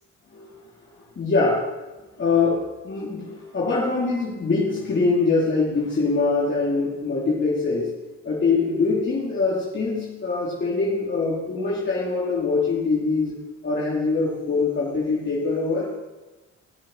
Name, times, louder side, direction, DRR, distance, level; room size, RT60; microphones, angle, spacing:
voice 1, 0.3-0.6 1.2-1.6 2.2-7.9 8.2-13.4 13.6-15.9, left 4 dB, 40° left, -6 dB, 3.0 m, -23 dB
16.0 x 7.5 x 5.7 m, 1.2 s
cardioid pair, 90°, 30 cm